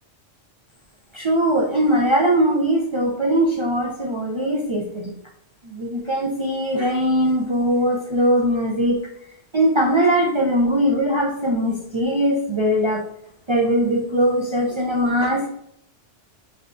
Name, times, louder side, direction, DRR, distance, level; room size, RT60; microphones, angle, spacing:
voice 1, 1.1-5.1 5.6-9.0 9.5-13.0 13.5-15.5, equal, 50° right, -1 dB, 0.3 m, -20 dB
6.5 x 2.2 x 2.5 m, 0.71 s
omnidirectional pair, 1.2 m